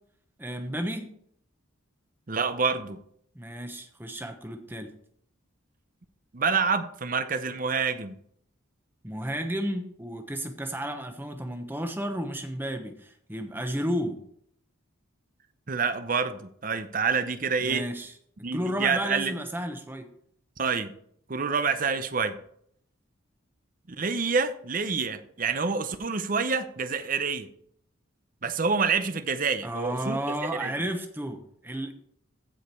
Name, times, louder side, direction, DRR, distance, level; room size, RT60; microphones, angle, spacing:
voice 1, 0.4-1.1 3.3-4.9 9.0-14.2 17.6-18.1 18.5-20.1 29.6-31.9, equal, 10° right, 5 dB, 1.0 m, -32 dB
voice 2, 2.3-3.0 6.3-8.1 15.7-17.8 18.4-19.3 20.6-20.9 21.3-22.4 23.9-27.5 28.4-30.2 30.6-30.7, right 5 dB, 40° right, 10 dB, 0.7 m, -27 dB
15.0 x 5.1 x 4.4 m, 0.67 s
head